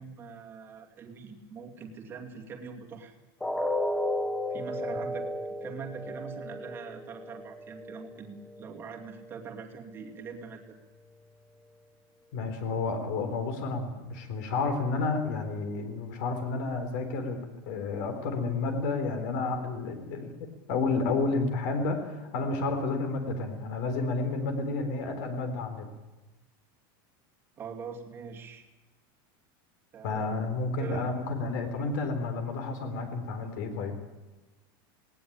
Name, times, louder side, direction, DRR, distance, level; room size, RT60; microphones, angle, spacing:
voice 1, 0.0-3.1 4.5-5.3 5.6-10.6 27.6-28.6 29.9-30.3 30.7-31.1, right 6 dB, 20° right, 1 dB, 2.6 m, -43 dB
sound 1, 3.4-9.4 9.8-10.0 10.4-10.5, left 1 dB, 5° left, 0.7 m, -34 dB
voice 2, 12.3-17.4 17.7-25.9 30.0-33.9, left 3 dB, 50° left, 7 dB, 3.8 m, -31 dB
19.0 x 19.0 x 8.7 m, 1.1 s
supercardioid pair, 175°, 12 cm